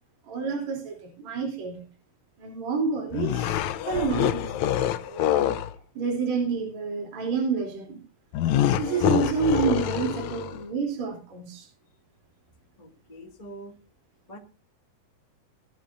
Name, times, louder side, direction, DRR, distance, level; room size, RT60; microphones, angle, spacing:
voice 1, 0.3-1.8 2.4-3.6 3.9-5.6 5.9-8.0 8.8-11.7, right 5 dB, 55° right, 2 dB, 4.6 m, -29 dB
sound 1, 3.1-5.7 8.3-10.6, left 11 dB, 75° left, 1.8 m, -25 dB
voice 2, 12.8-13.7 14.3-14.4, right 1 dB, 15° left, 1 dB, 1.6 m, -44 dB
18.5 x 12.5 x 2.7 m, 0.32 s
omnidirectional pair, 4.0 m